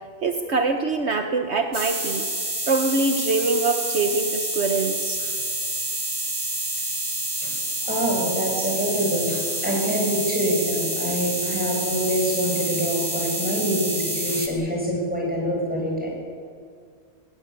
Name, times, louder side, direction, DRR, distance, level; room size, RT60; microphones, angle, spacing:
voice 1, 0.2-2.3 2.7-5.2, right 3 dB, 60° right, 5 dB, 1.4 m, -24 dB
sound 1, 1.7-14.5, right 1 dB, 25° right, 2.8 m, -28 dB
voice 2, 7.9-16.1, equal, 5° right, -2 dB, 7.6 m, -25 dB
21.0 x 18.5 x 9.7 m, 2.1 s
omnidirectional pair, 1.3 m